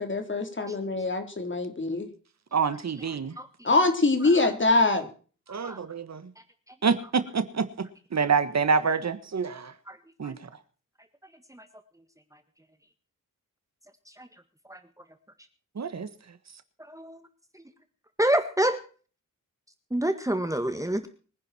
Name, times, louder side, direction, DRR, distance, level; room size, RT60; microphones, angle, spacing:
voice 1, 0.0-2.1 3.6-5.1, left 2 dB, 35° left, 6 dB, 3.8 m, -24 dB
voice 2, 2.5-3.3 5.5-6.2 6.8-9.7 10.2-10.4 15.7-16.1, right 5 dB, 55° right, 12 dB, 1.6 m, -27 dB
voice 3, 3.4-3.7 5.6-5.8 9.9-10.0 10.2-10.3 11.5-11.6 14.2-14.3 14.7-14.8 16.9-17.2 18.2-18.8 19.9-21.1, right 1 dB, 10° right, 8 dB, 1.7 m, -27 dB
24.5 x 10.5 x 4.4 m, 0.39 s
wide cardioid pair, 105°, 32 cm